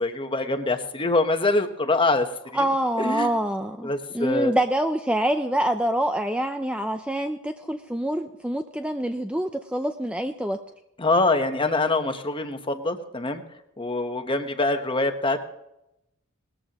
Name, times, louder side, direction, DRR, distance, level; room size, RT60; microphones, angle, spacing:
voice 1, 0.0-2.6 3.0-3.3 3.8-4.5 11.0-13.4 13.8-15.4, left 2 dB, 25° left, 7 dB, 1.1 m, -24 dB
voice 2, 2.5-10.6, right 1 dB, 5° right, 6 dB, 0.5 m, -26 dB
19.5 x 14.0 x 3.0 m, 0.86 s
head